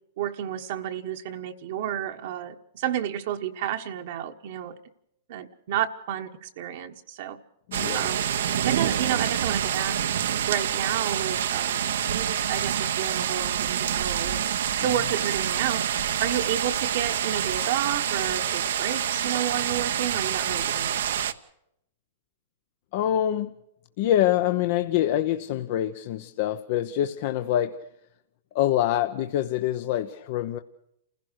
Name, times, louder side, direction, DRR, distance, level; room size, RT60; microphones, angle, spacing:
voice 1, 0.2-4.8 5.3-7.4 7.9-8.3 8.6-11.8 12.1-14.4 14.8-21.3, right 10 dB, 60° right, 1.3 m, -31 dB
voice 2, 7.7-8.0 22.9-23.5 24.0-27.8 28.5-30.6, left 12 dB, 55° left, 0.8 m, -25 dB
sound 1, 7.7-21.3, right 9 dB, 75° right, 1.0 m, -27 dB
28.5 x 16.0 x 6.5 m
hypercardioid pair, 130°, 0 cm